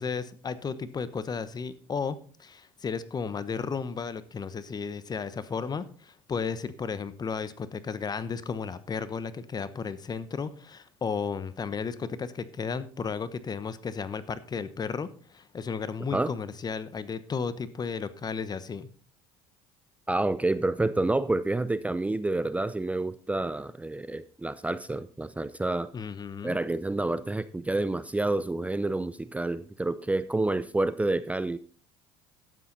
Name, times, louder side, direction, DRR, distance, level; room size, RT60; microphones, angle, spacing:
voice 1, 0.0-18.9 25.9-26.6, left 5 dB, 30° left, 15 dB, 1.1 m, -34 dB
voice 2, 20.1-25.9 26.4-31.6, right 2 dB, 10° right, 14 dB, 0.6 m, -28 dB
12.5 x 8.5 x 4.0 m, 0.40 s
supercardioid pair, 75°, 13 cm